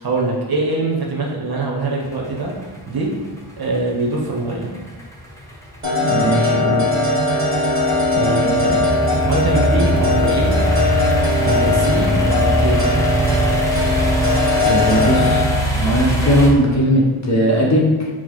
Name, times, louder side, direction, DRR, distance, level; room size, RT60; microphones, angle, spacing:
voice 1, 0.0-2.5 2.9-3.1 3.6-4.7 8.1-10.6 11.4-12.8, right 2 dB, 50° right, -2 dB, 0.8 m, -23 dB
sound 1, 2.0-16.5, right 1 dB, 5° left, 0.8 m, -22 dB
sound 2, 5.8-15.4, left 2 dB, 25° right, 1.1 m, -19 dB
voice 2, 6.0-6.9 14.6-15.5 15.7-18.1, equal, 35° left, -3 dB, 0.8 m, -17 dB
4.4 x 2.1 x 3.0 m, 1.3 s
cardioid pair, 60°, 48 cm